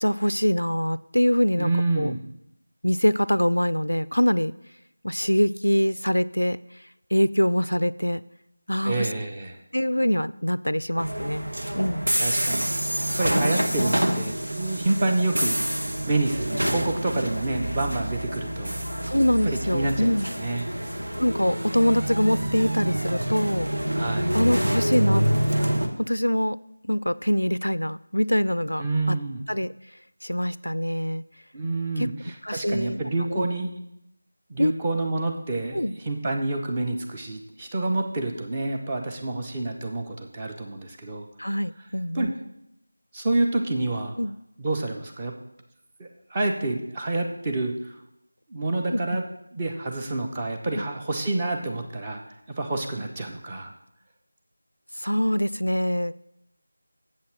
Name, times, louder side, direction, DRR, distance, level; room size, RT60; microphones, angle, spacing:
voice 1, 0.0-1.7 2.0-2.1 2.8-4.5 5.0-6.6 7.1-8.2 8.7-9.1 9.7-11.5 11.8-12.1 19.1-20.3 21.2-23.7 24.3-25.2 26.0-26.6 26.8-29.2 29.5-29.7 30.2-31.2 32.0-32.1 32.4-33.0 33.3-33.5 34.6-34.7 35.7-35.9 41.4-42.3 44.2-44.3 48.9-49.2 50.7-50.8 55.0-56.1, equal, 90° left, 18 dB, 0.3 m, -24 dB
voice 2, 1.6-2.2 8.8-9.6 12.2-12.7 13.1-15.8 16.1-18.7 19.5-20.7 24.0-24.3 28.8-29.4 31.5-33.7 34.5-41.3 42.1-42.3 43.1-44.2 44.6-45.3 46.0-48.0 48.5-49.2 49.5-52.2 52.6-53.7, right 2 dB, 20° right, 2 dB, 0.9 m, -28 dB
sound 1, 11.0-25.9, right 1 dB, 80° right, 1.2 m, -27 dB
7.5 x 5.7 x 7.3 m, 0.81 s
figure-of-eight pair, 170°, 0 cm